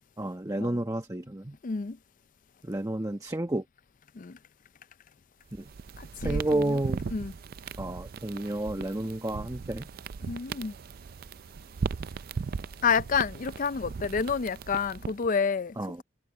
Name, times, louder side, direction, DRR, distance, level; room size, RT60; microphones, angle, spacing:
voice 1, 0.2-1.6 2.6-3.6 5.6-5.7 6.2-7.0 7.8-9.9 15.8-16.0, right 1 dB, 15° right, 1.0 m, -31 dB
voice 2, 1.6-2.0 4.1-4.4 6.0-6.8 7.1-7.3 10.3-10.7 12.8-16.0, left 5 dB, 40° left, 0.5 m, -29 dB
sound 1, 5.5-15.3, right 5 dB, 50° right, 0.4 m, -37 dB
head